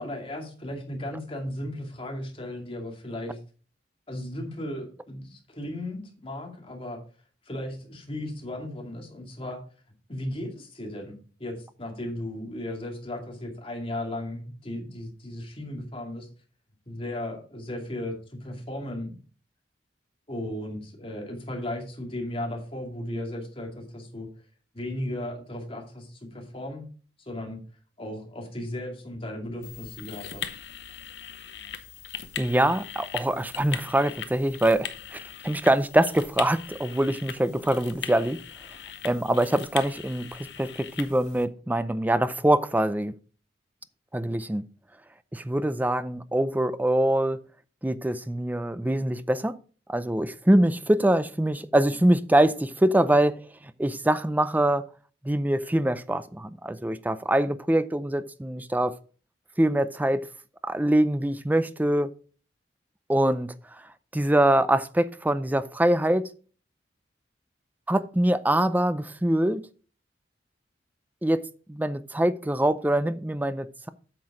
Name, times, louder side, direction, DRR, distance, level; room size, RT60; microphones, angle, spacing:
voice 1, 0.0-3.4 4.1-7.0 7.5-9.6 10.1-16.3 16.9-19.2 20.3-24.3 24.7-26.9 27.2-27.6 28.0-30.5, left 1 dB, 30° left, 2.5 m, -35 dB
sound 1, 29.6-41.5, left 8 dB, 65° left, 0.8 m, -40 dB
voice 2, 32.4-38.4 39.0-43.2 44.1-44.7 45.3-47.4 47.8-49.6 49.9-53.4 53.8-54.9 55.2-58.9 59.6-60.3 60.6-62.1 63.1-63.8 64.1-66.3 67.9-69.6 71.2-71.4 71.7-73.9, right 1 dB, 10° right, 0.5 m, -24 dB
8.7 x 6.2 x 4.9 m
head